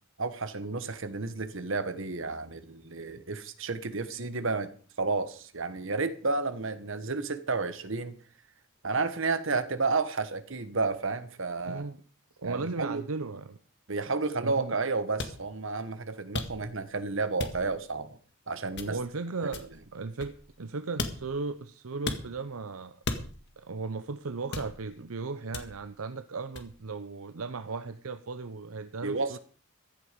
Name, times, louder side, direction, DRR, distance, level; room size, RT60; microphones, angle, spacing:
voice 1, 0.2-4.7 5.0-8.1 8.8-11.8 12.4-13.0 13.9-18.2 18.5-19.0 19.4-19.5 29.0-29.4, right 3 dB, 65° right, 1.4 m, -31 dB
voice 2, 11.6-12.0 12.4-13.6 14.4-14.8 18.9-23.2 23.6-29.4, right 4 dB, 80° right, 0.8 m, -36 dB
sound 1, 15.2-15.4 16.3-16.8 17.4-17.8 18.8-19.1 19.5-20.6 21.0-21.4 22.1-22.3 23.0-23.6 24.5-25.0 25.5-25.9 26.6-26.8, left 3 dB, 55° left, 1.8 m, -36 dB
15.0 x 11.5 x 5.2 m
head